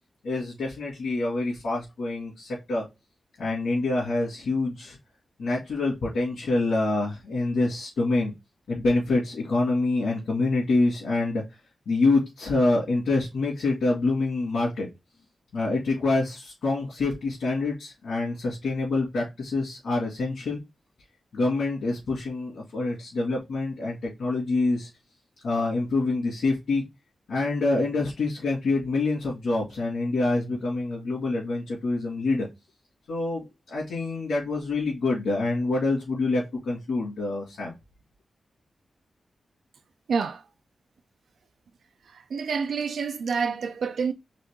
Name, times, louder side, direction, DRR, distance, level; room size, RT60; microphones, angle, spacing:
voice 1, 0.2-2.9 3.4-5.0 5.4-8.3 8.7-11.4 11.9-14.9 15.5-20.6 21.3-24.9 25.4-26.9 27.3-32.5 33.1-37.7, left 2 dB, 75° left, 1.9 m, -26 dB
voice 2, 40.1-40.5 42.0-44.1, right 5 dB, 80° right, 0.3 m, -28 dB
4.0 x 3.6 x 3.5 m
wide cardioid pair, 170°, 0 cm